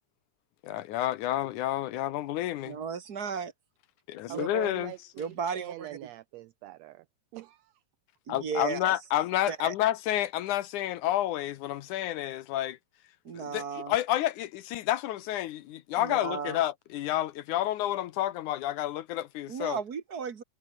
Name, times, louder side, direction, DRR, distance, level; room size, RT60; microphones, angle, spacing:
voice 1, 0.6-2.8 4.1-4.9 8.3-12.8 13.4-19.8, left 13 dB, 75° left, 2.4 m, -30 dB
voice 2, 2.6-3.5 4.3-4.5 5.2-6.0 8.3-8.9 9.5-9.7 13.2-13.9 16.0-16.6 19.5-20.4, right 6 dB, 40° right, 1.5 m, -35 dB
voice 3, 4.3-7.0 7.3-7.7, right 17 dB, 80° right, 1.5 m, -43 dB
omnidirectional pair, 3.6 m